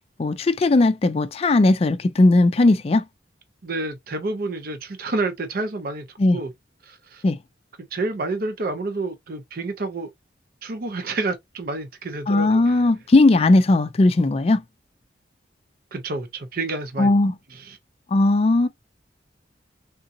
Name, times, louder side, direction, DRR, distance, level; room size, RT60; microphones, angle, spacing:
voice 1, 0.2-3.0 6.2-6.4 7.2-7.4 12.3-14.6 17.0-17.4 18.1-18.7, left 2 dB, 30° left, 0.4 m, -17 dB
voice 2, 3.6-6.1 6.3-6.5 6.9-7.2 7.9-10.1 10.6-12.8 15.9-17.1 17.7-17.8, right 2 dB, 50° right, 0.6 m, -29 dB
3.6 x 2.7 x 2.6 m
head